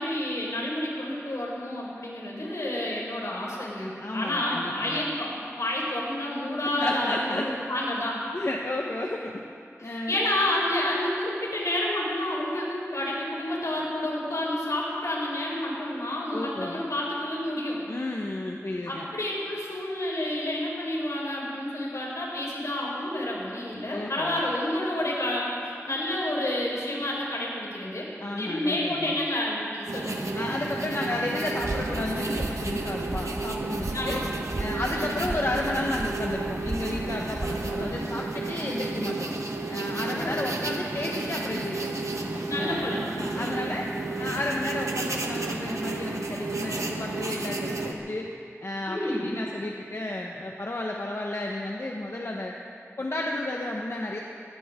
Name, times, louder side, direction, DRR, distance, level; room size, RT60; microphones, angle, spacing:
voice 1, 0.0-5.3 5.6-8.2 9.8-17.8 18.8-30.4 33.9-34.2 34.9-35.2 40.1-40.4 42.4-43.6 48.9-49.3, left 1 dB, 85° left, -4 dB, 4.9 m, -30 dB
voice 2, 4.0-5.0 6.6-7.5 8.3-9.4 9.8-10.3 16.3-16.8 17.9-19.1 23.9-24.4 28.2-29.1 30.3-34.2 34.6-39.3 39.7-42.1 42.6-43.8 44.2-48.3 48.6-52.5 53.0-54.2, left 1 dB, 55° left, -1 dB, 1.3 m, -32 dB
sound 1, 29.9-47.9, right 2 dB, 90° right, 1.4 m, -32 dB
sound 2, 31.6-38.0, right 1 dB, 60° right, 2.1 m, -36 dB
21.5 x 18.0 x 3.8 m, 2.4 s
wide cardioid pair, 50°, 5 cm